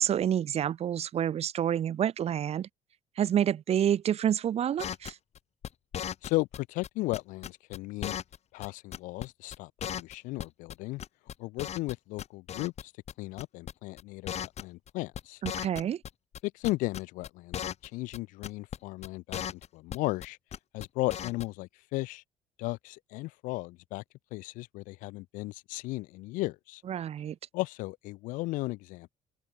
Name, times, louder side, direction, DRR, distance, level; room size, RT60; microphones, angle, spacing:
voice 1, 0.0-2.7 3.2-5.2 15.4-16.0 26.9-27.4, right 10 dB, 50° right, 0.9 m, -28 dB
sound 1, 4.8-6.6 6.8-8.4 8.6-8.7 8.9-9.3 9.5-9.6 9.8-10.7 11.0-11.9 12.2-12.8 13.1-13.2 13.4-13.7 14.0-14.1 14.3-14.9 15.2-16.4 16.6-17.9 18.1-18.2 18.4-18.8 19.0-20.3 20.5-20.9 21.1-21.5, left 9 dB, 55° left, 2.5 m, -36 dB
voice 2, 6.2-8.2 8.5-11.0 11.4-12.9 13.2-15.4 16.4-20.4 20.7-22.2 22.6-24.0 24.3-26.8 27.5-29.2, left 21 dB, 80° left, 0.5 m, -35 dB
supercardioid pair, 80°, 13 cm